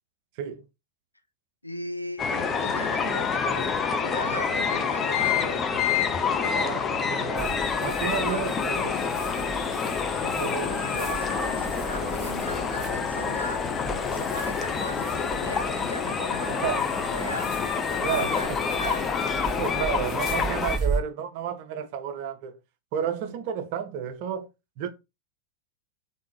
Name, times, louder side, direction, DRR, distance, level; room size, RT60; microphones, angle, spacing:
voice 1, 1.6-5.9 8.3-8.4 10.3-13.8 14.1-17.6 17.9-18.5 18.8-19.6 23.2-23.4, equal, 90° left, 0.4 m, -38 dB
sound 1, 2.2-20.8, left 6 dB, 20° left, 0.4 m, -27 dB
voice 2, 6.4-9.2 10.2-10.8 16.5-16.8 18.0-18.6 19.6-22.6 22.9-24.5 24.8-24.9, right 8 dB, 45° right, 0.4 m, -32 dB
sound 2, 7.4-21.0, right 4 dB, 5° right, 1.9 m, -37 dB
sound 3, 8.1-15.4, left 2 dB, 65° left, 1.3 m, -49 dB
3.5 x 2.6 x 3.0 m
figure-of-eight pair, 90°, 0 cm